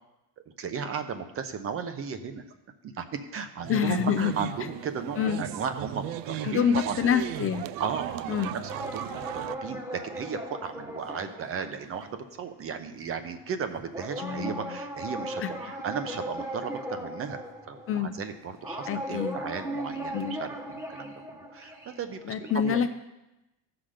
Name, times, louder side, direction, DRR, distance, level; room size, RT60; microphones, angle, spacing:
voice 1, 0.6-2.4 2.8-7.0 7.8-22.8, right 6 dB, 35° right, 9 dB, 0.8 m, -35 dB
sound 1, 3.6-9.6, right 13 dB, 65° right, 0.5 m, -37 dB
voice 2, 3.7-4.3 5.2-5.4 6.4-7.8 8.3-8.5 14.2-14.5 17.9-18.1 18.9-19.4 20.1-20.4 22.3-22.9, left 8 dB, 35° left, 9 dB, 0.5 m, -26 dB
sound 2, 8.7-12.6 13.2-13.4 13.9-22.5, right 1 dB, 10° right, 1.0 m, -38 dB
15.5 x 5.9 x 5.0 m, 0.95 s
cardioid pair, 165°, 38 cm